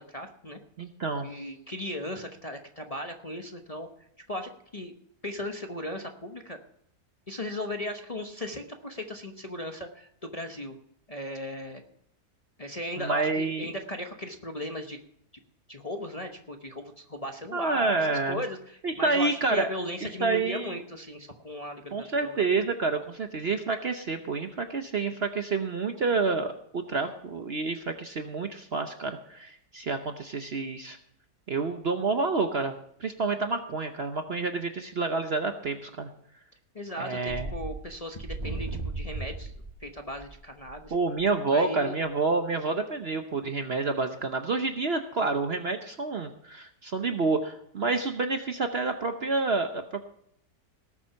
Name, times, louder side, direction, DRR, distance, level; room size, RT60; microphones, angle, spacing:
voice 1, 0.0-0.6 1.2-3.9 4.3-4.9 5.2-6.6 7.3-10.8 11.1-11.8 12.6-15.0 15.7-22.5 36.7-39.5 39.8-40.9 41.5-41.9, left 1 dB, 25° left, 3 dB, 0.9 m, -37 dB
voice 2, 0.8-1.3 13.0-13.7 17.5-18.4 18.8-19.7 20.2-20.7 21.9-31.0 31.5-32.7 33.0-36.1 37.0-37.5 40.9-50.0, right 3 dB, 45° right, 6 dB, 0.9 m, -28 dB
sound 1, 37.3-41.3, right 2 dB, 25° right, 1.3 m, -36 dB
18.5 x 7.3 x 5.7 m, 0.70 s
omnidirectional pair, 1.7 m